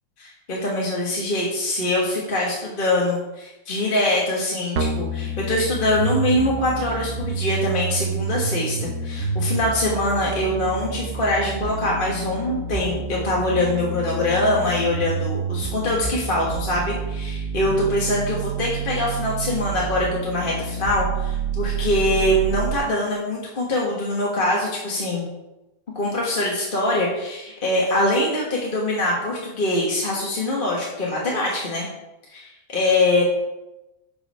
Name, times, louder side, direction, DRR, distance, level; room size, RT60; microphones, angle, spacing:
voice 1, 0.2-25.2 25.9-31.9 32.3-33.2, left 1 dB, 30° left, -4 dB, 1.3 m, -23 dB
sound 1, 4.8-22.8, right 4 dB, 60° right, 1.1 m, -28 dB
8.1 x 5.3 x 5.5 m, 0.97 s
omnidirectional pair, 2.2 m